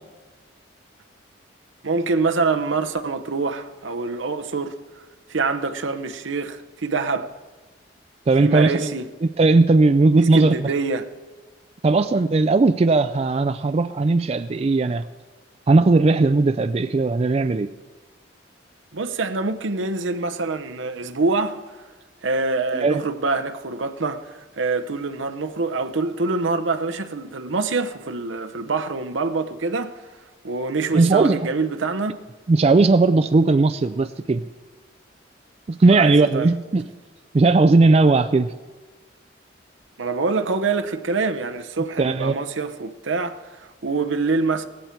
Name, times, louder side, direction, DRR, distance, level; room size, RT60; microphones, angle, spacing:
voice 1, 1.8-4.8 5.3-7.3 8.4-9.1 10.2-11.1 18.9-21.6 22.2-30.0 30.4-32.2 35.8-36.5 40.0-44.7, right 3 dB, 80° right, 0.8 m, -25 dB
voice 2, 8.3-8.9 9.2-10.7 11.8-15.0 15.7-17.7 22.7-23.0 30.9-31.5 32.5-34.4 35.7-36.8 37.3-38.5 42.0-42.3, right 3 dB, 35° right, 0.4 m, -17 dB
17.5 x 15.0 x 4.5 m
head